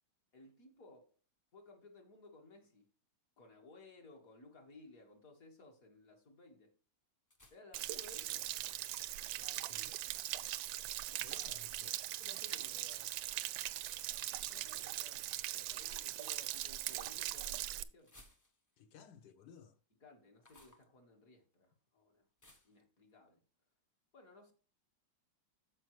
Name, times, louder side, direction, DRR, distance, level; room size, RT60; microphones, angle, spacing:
voice 1, 0.3-1.1 1.5-2.9 3.4-6.8 7.5-8.5 9.4-9.8 12.2-13.2 14.5-18.2 20.0-22.3 22.6-23.4 24.1-24.5, left 2 dB, 50° left, 2.0 m, -59 dB
sound 1, 7.3-7.8 9.2-9.6 11.3-11.7 13.7-13.9 15.7-16.5 18.0-18.8 20.4-20.9 22.4-22.8, left 1 dB, 20° left, 0.4 m, -63 dB
Stream / Splash splatter / Trickle dribble, 7.7-17.8, right 15 dB, 85° right, 1.3 m, -41 dB
voice 2, 11.1-12.0 18.8-19.8, left 7 dB, 70° left, 1.3 m, -58 dB
13.5 x 5.1 x 3.1 m
omnidirectional pair, 2.0 m